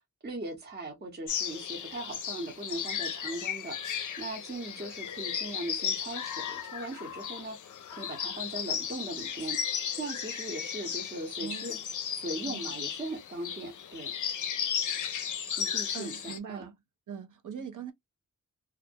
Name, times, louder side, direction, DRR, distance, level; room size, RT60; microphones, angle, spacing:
voice 1, 0.2-9.6 9.9-11.8 12.1-14.1 15.6-16.6, right 2 dB, 35° right, 0.8 m, -39 dB
sound 1, 1.3-16.4, left 8 dB, 70° left, 0.5 m, -35 dB
voice 2, 11.4-11.8 12.5-12.8 15.9-16.8 17.1-17.9, right 7 dB, 75° right, 0.6 m, -41 dB
2.5 x 2.1 x 2.5 m
wide cardioid pair, 120°, 31 cm